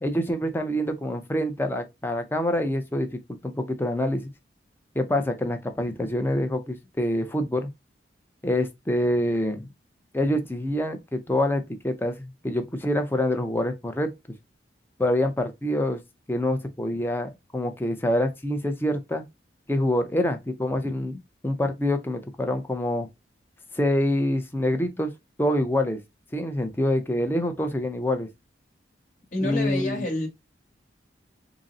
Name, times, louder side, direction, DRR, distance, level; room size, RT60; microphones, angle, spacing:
voice 1, 0.0-4.3 5.0-7.7 8.4-9.7 10.1-14.1 15.0-16.0 16.3-19.2 19.7-23.1 23.7-25.1 25.4-26.0 26.3-28.3 29.4-30.1, left 1 dB, 10° left, 0.5 m, -26 dB
voice 2, 29.3-30.3, left 2 dB, 45° left, 1.2 m, -28 dB
3.9 x 2.0 x 3.7 m
head